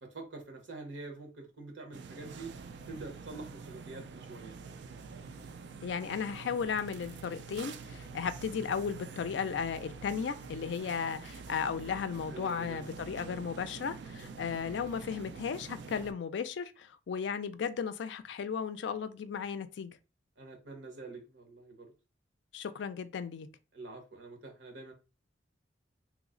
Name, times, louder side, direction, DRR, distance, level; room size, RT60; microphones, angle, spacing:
voice 1, 0.0-2.5 2.9-4.6 12.3-12.8 14.2-14.4 20.4-21.9 23.7-24.9, right 3 dB, 85° right, 1.1 m, -46 dB
sound 1, 1.9-16.1, right 4 dB, 65° right, 0.3 m, -46 dB
voice 2, 5.8-20.0 22.5-23.5, left 6 dB, 75° left, 0.3 m, -35 dB
3.1 x 2.0 x 3.6 m
head